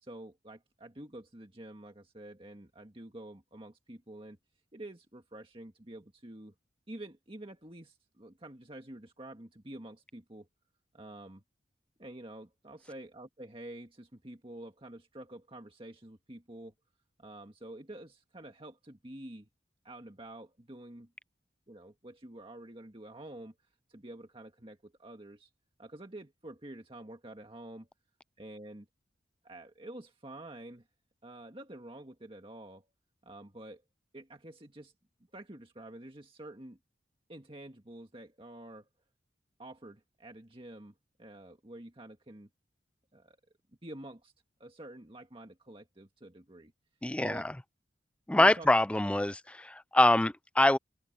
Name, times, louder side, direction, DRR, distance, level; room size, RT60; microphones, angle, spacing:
voice 1, 0.0-4.4 4.7-6.5 6.9-10.5 10.9-11.4 12.0-16.7 17.2-19.5 19.8-21.1 21.7-23.5 23.9-25.5 25.8-27.9 28.4-28.9 29.4-30.9 31.2-32.9 33.2-33.8 34.1-34.9 35.3-36.8 37.3-38.9 39.6-40.9 41.2-42.5 43.1-43.4 43.8-44.3 44.6-46.7 47.2-47.4 48.3-48.7, right 1 dB, 30° right, 1.8 m, -48 dB
voice 2, 47.0-47.5 48.3-50.8, left 1 dB, 5° left, 0.3 m, -25 dB
open air
head